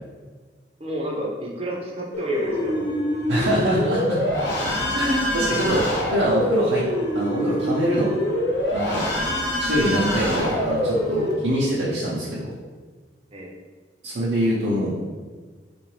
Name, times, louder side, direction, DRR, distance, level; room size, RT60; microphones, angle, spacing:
voice 1, 0.8-3.0 3.3-3.5 9.3-9.5 13.3-13.5, right 1 dB, 30° right, -2 dB, 0.6 m, -31 dB
sound 1, 2.1-11.3, left 1 dB, 80° left, 0.9 m, -25 dB
voice 2, 3.3-4.2 4.6-5.9 6.1-6.8 7.1-8.1 8.7-9.0 9.6-12.5 14.0-15.0, equal, 80° right, -9 dB, 0.7 m, -24 dB
3.8 x 2.5 x 3.1 m, 1.5 s
head